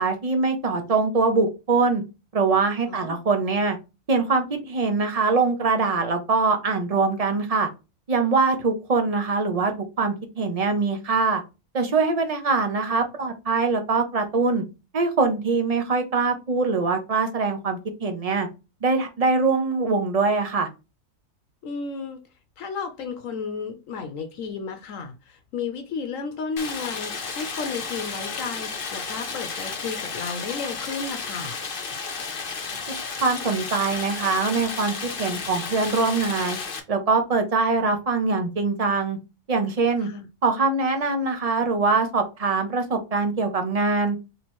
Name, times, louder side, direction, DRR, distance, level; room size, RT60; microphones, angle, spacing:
voice 1, 0.0-2.0 2.3-3.8 4.1-7.7 8.1-9.7 10.0-11.4 11.7-14.6 14.9-18.5 18.8-20.7 32.9-36.6 36.9-39.2 39.5-40.1 40.4-44.2, right 4 dB, 35° right, 0.7 m, -23 dB
voice 2, 2.9-3.2 21.6-22.2 22.6-31.6 40.0-40.3, left 5 dB, 75° left, 1.0 m, -33 dB
Stream, 26.6-36.8, left 5 dB, 45° left, 0.9 m, -33 dB
3.3 x 2.9 x 4.3 m
omnidirectional pair, 1.4 m